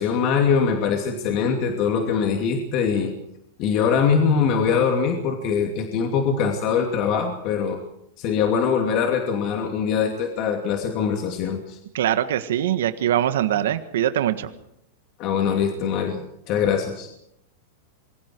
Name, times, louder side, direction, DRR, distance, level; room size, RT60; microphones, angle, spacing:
voice 1, 0.0-3.1 3.6-7.8 8.2-11.8 15.2-17.1, left 6 dB, 35° left, 3 dB, 2.7 m, -22 dB
voice 2, 11.9-14.5, right 11 dB, 75° right, 10 dB, 1.6 m, -22 dB
28.0 x 22.5 x 4.7 m, 0.77 s
supercardioid pair, 160°, 0 cm